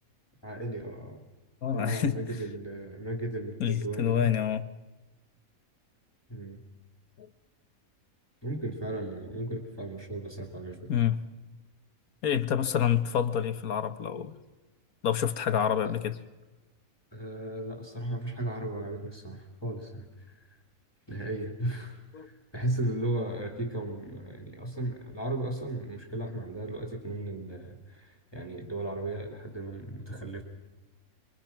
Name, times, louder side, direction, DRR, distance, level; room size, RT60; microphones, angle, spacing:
voice 1, 0.4-1.2 1.7-4.3 6.3-6.6 8.4-10.8 15.8-16.0 17.1-20.4 21.1-30.4, right 1 dB, 15° left, 2.9 m, -35 dB
voice 2, 1.6-2.2 3.6-4.6 10.9-11.2 12.2-14.3 15.0-16.1 22.1-22.3, left 9 dB, 85° left, 1.7 m, -27 dB
29.0 x 22.5 x 5.9 m
omnidirectional pair, 1.5 m